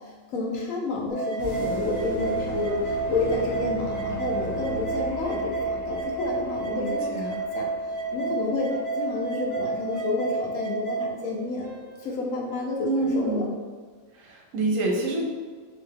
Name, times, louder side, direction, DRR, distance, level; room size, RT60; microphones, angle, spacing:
voice 1, 0.0-7.3 7.5-7.7 8.1-8.7 8.9-11.7 12.0-13.4, left 3 dB, 70° left, -1 dB, 1.1 m, -30 dB
sound 1, 1.1-11.1, right 3 dB, 25° left, 1.0 m, -30 dB
sound 2, 1.4-13.1, right 2 dB, 5° right, 0.9 m, -39 dB
voice 2, 6.7-7.5 12.8-13.5 14.1-15.2, right 2 dB, 75° right, -1 dB, 1.1 m, -27 dB
3.5 x 3.0 x 3.3 m, 1.5 s
omnidirectional pair, 1.4 m